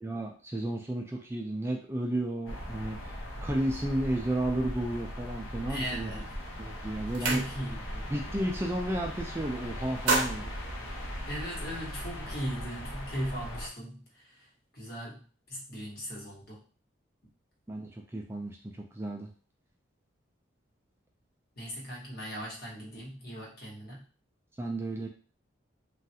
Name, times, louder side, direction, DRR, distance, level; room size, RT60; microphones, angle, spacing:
voice 1, 0.0-3.1 3.4-6.1 6.6-7.4 8.1-10.5 17.7-19.3 24.6-25.1, right 1 dB, 10° right, 1 dB, 0.3 m, -32 dB
sound 1, 2.5-13.7, equal, 90° left, 0.9 m, -39 dB
voice 2, 5.7-6.3 7.2-8.1 11.3-14.5 14.7-16.6 21.6-24.0, equal, 50° left, -3 dB, 1.1 m, -38 dB
sound 2, 6.2-6.5 6.8-8.0 8.3-8.6 8.9-9.4 9.8-11.6, right 3 dB, 65° right, 0.7 m, -32 dB
3.2 x 2.4 x 2.7 m, 0.39 s
head